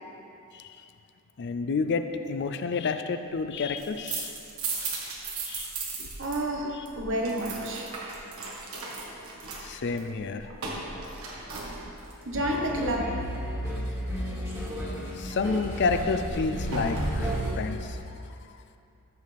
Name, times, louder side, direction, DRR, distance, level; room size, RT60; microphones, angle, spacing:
voice 1, 0.5-0.9 1.4-4.4 5.5-5.7 6.0-6.1 6.6-6.9 9.6-10.6 14.3-14.4 14.9-18.4, left 4 dB, 50° left, 8 dB, 0.4 m, -30 dB
sound 1, 3.6-6.4 6.6-12.2 15.3-17.5, right 3 dB, 75° right, 1.5 m, -36 dB
voice 2, 6.2-7.9 12.3-13.1, right 1 dB, 60° right, 0 dB, 1.3 m, -29 dB
sound 2, 12.3-17.5, equal, 15° right, 1.8 m, -33 dB
14.0 x 6.7 x 3.4 m, 2.7 s
head